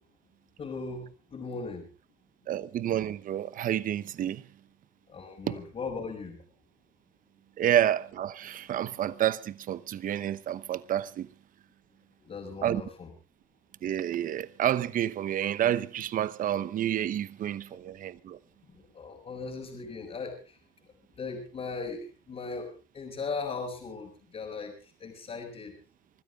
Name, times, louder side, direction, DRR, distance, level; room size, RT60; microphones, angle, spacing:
voice 1, 0.6-1.9 5.1-6.4 12.2-13.1 18.7-20.6 21.2-25.8, left 4 dB, 40° left, 5.3 m, -38 dB
voice 2, 2.5-4.4 5.5-5.6 7.6-11.3 12.6-12.8 13.8-18.4, right 11 dB, 55° right, 1.0 m, -29 dB
25.0 x 13.5 x 3.7 m
cardioid pair, 110°, 17 cm